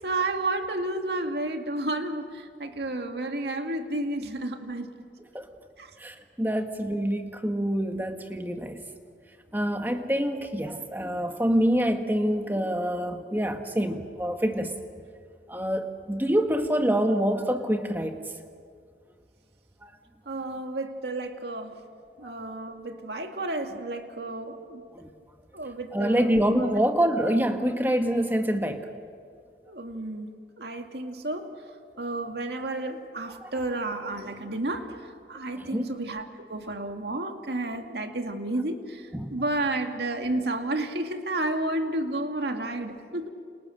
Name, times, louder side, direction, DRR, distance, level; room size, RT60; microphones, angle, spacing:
voice 1, 0.0-4.9 5.8-5.9 20.3-21.8 22.2-24.8 25.5-26.4 26.7-26.8 29.7-31.5 32.0-43.3, right 2 dB, 70° right, 5 dB, 2.1 m, -31 dB
voice 2, 6.0-8.8 9.5-14.7 15.5-18.2 19.8-19.9 22.2-22.5 24.9-25.1 25.9-28.9 33.4-33.5 35.5-35.9 39.1-39.3, equal, 10° right, 5 dB, 1.5 m, -26 dB
30.0 x 28.0 x 6.5 m, 2.2 s
head